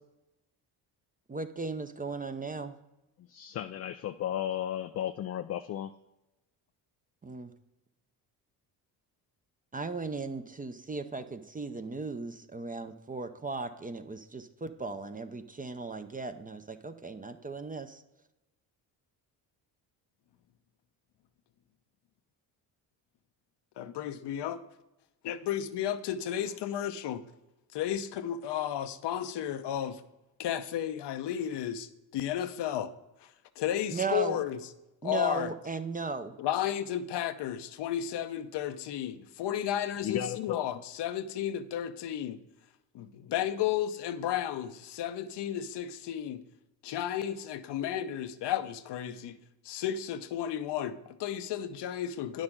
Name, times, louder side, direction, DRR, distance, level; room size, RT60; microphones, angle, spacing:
voice 1, 1.3-2.7 7.2-7.5 9.7-18.0 33.9-34.4 35.0-36.4, right 4 dB, 15° right, 9 dB, 0.6 m, -36 dB
voice 2, 3.3-5.9 40.0-40.6, left 11 dB, 35° left, 9 dB, 0.4 m, -34 dB
voice 3, 23.8-24.6 25.2-27.2 27.7-30.0 30.4-32.9 33.2-33.3 33.6-34.6 35.0-35.5 36.4-42.4 42.9-46.4 46.8-49.4 49.6-52.4, left 10 dB, 55° left, 11 dB, 0.8 m, -33 dB
9.5 x 6.4 x 3.7 m, 0.96 s
hypercardioid pair, 55°, 49 cm